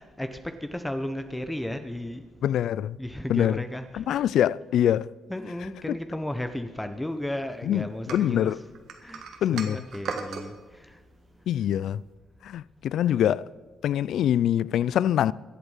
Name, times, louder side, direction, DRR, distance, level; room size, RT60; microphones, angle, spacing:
voice 1, 0.0-2.2 3.0-4.0 5.3-8.6 9.0-9.2 9.5-10.5 10.8-10.9, left 1 dB, 10° left, 0.9 m, -34 dB
voice 2, 2.4-3.0 3.3-3.6 3.9-5.1 7.6-8.6 9.4-9.8 11.5-12.0 12.4-13.4 13.8-15.3, left 10 dB, 75° left, 0.3 m, -24 dB
sound 1, 8.1-10.5, right 5 dB, 70° right, 1.8 m, -36 dB
22.5 x 8.1 x 5.6 m
cardioid pair, 90°, 0 cm